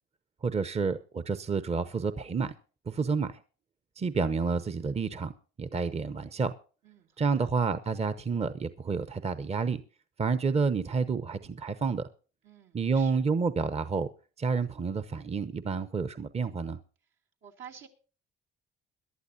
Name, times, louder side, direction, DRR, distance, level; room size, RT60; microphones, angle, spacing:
voice 1, 0.4-2.5 2.9-3.4 4.0-5.3 5.6-6.5 7.2-9.8 10.2-12.1 12.7-14.1 14.4-16.8, right 5 dB, 30° right, 13 dB, 0.8 m, -29 dB
voice 2, 6.8-7.5 12.4-13.3 17.4-17.9, right 8 dB, 80° right, 1 dB, 2.7 m, -50 dB
22.0 x 11.5 x 2.7 m, 0.37 s
cardioid pair, 90°, 20 cm